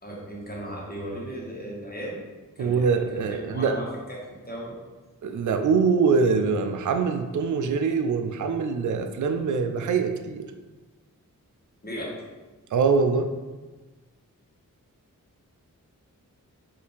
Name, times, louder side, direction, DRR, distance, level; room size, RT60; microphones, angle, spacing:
voice 1, 0.0-2.2 2.5-4.2 4.5-4.8 11.8-12.1, equal, 25° left, -4 dB, 1.4 m, -36 dB
voice 2, 2.6-3.8 5.2-10.5 12.7-13.3, right 5 dB, 60° right, 6 dB, 0.4 m, -23 dB
4.7 x 2.8 x 3.4 m, 1.2 s
cardioid pair, 45°, 34 cm